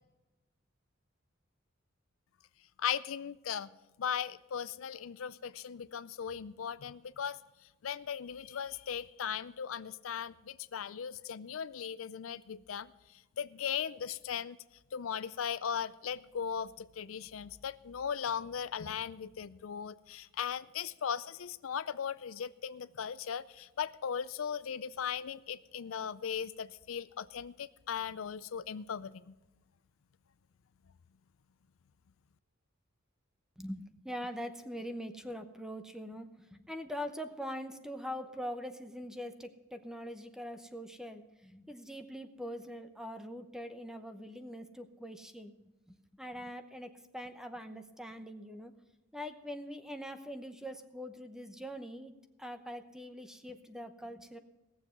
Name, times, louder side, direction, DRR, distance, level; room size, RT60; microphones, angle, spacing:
voice 1, 2.8-3.7 4.0-7.4 7.8-12.9 13.4-14.6 14.9-29.3, left 8 dB, 90° left, 16 dB, 0.5 m, -38 dB
voice 2, 33.6-48.7 49.1-54.4, equal, 5° right, 8 dB, 0.8 m, -43 dB
18.0 x 7.2 x 5.8 m, 1.1 s
head